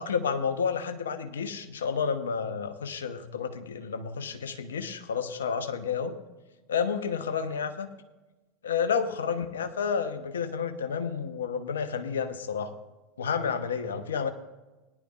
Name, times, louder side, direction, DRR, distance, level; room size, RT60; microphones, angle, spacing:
voice 1, 0.0-6.2 6.7-7.9 8.6-12.7 13.2-14.3, left 6 dB, 75° left, 9 dB, 0.9 m, -30 dB
18.5 x 11.0 x 2.4 m, 1.1 s
figure-of-eight pair, 80°, 0 cm